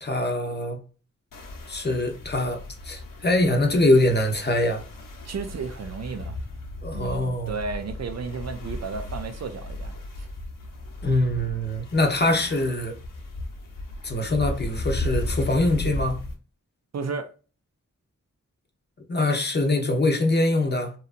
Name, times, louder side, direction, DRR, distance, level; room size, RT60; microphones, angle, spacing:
voice 1, 0.0-0.8 1.7-4.8 6.8-7.5 11.0-13.0 14.0-16.2 19.1-20.9, left 1 dB, 30° left, 0.6 m, -23 dB
sound 1, 1.3-16.3, left 1 dB, 85° left, 0.8 m, -35 dB
voice 2, 5.3-6.4 6.9-9.9 10.2-10.3 16.9-17.3, right 5 dB, 55° right, 0.4 m, -33 dB
2.8 x 2.3 x 2.4 m
wide cardioid pair, 75°, 32 cm